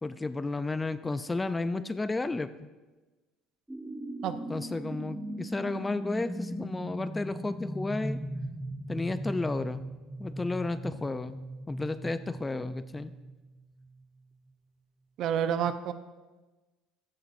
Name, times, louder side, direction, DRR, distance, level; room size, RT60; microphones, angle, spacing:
voice 1, 0.0-2.5 4.5-8.2 8.9-9.8 10.2-11.4 11.7-13.1, left 3 dB, 15° left, 12 dB, 0.4 m, -32 dB
sound 1, 3.7-14.0, right 1 dB, 5° right, 1.2 m, -39 dB
voice 2, 15.2-15.9, right 8 dB, 55° right, 11 dB, 0.6 m, -28 dB
14.0 x 9.9 x 2.6 m, 1.2 s
cardioid pair, 130°, 0 cm